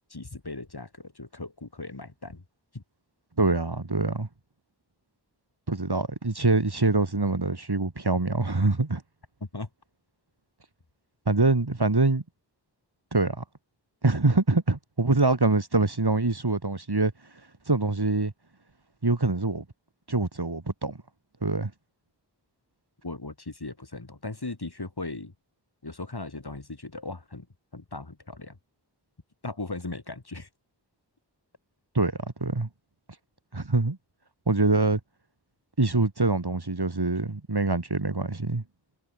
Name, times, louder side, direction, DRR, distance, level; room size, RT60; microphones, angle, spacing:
voice 1, 0.1-2.4 2.7-2.8 9.5-9.7 23.0-25.3 25.8-27.5 27.7-28.6 29.4-30.5, left 2 dB, 60° left, 6.3 m, -38 dB
voice 2, 3.4-4.3 5.7-9.0 11.3-12.2 13.1-13.4 14.0-17.1 17.7-18.3 19.0-19.6 20.1-21.0 21.4-21.7 31.9-32.1 32.4-32.7 33.5-34.0 34.5-35.0 35.8-38.6, right 3 dB, 60° right, 5.9 m, -24 dB
wide cardioid pair, 45°, 44 cm